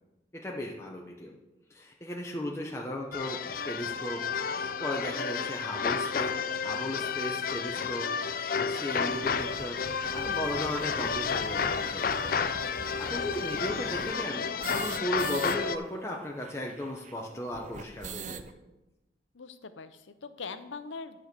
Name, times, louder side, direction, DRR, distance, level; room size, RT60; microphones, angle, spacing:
voice 1, 0.3-1.3 1.7-9.8 10.1-12.2 12.6-18.4, left 1 dB, 15° left, -1 dB, 0.7 m, -36 dB
sound 1, 3.1-15.8, left 6 dB, 50° left, 0.4 m, -31 dB
sound 2, 6.9-7.0 7.7-7.8 8.0-8.1 8.4-8.5 8.9-15.6 15.8-15.9 16.1-18.5, right 5 dB, 40° right, 0.4 m, -44 dB
voice 2, 13.3-13.8 19.3-21.2, left 4 dB, 80° left, 11 dB, 0.7 m, -42 dB
11.0 x 4.5 x 6.7 m, 1.0 s
head